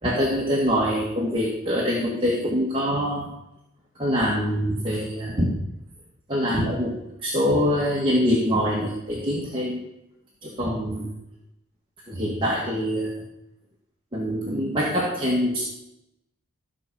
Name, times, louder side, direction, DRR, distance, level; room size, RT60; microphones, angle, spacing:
voice 1, 0.0-3.3 4.0-5.5 6.3-6.9 7.2-9.9 10.4-11.1 12.1-13.2 14.1-15.6, equal, 25° right, -4 dB, 1.9 m, -24 dB
14.0 x 5.1 x 7.0 m, 0.84 s
head